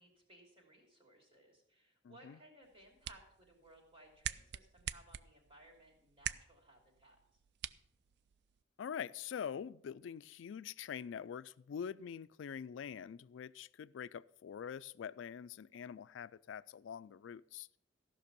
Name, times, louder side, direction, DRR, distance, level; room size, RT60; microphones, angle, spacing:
voice 1, 0.0-7.4, right 1 dB, 30° right, 0 dB, 3.0 m, -62 dB
voice 2, 2.0-2.4 8.8-17.7, left 7 dB, 85° left, 17 dB, 0.3 m, -45 dB
sound 1, 2.6-8.6, right 10 dB, 60° right, 0.4 m, -47 dB
14.5 x 6.0 x 6.8 m, 0.73 s
head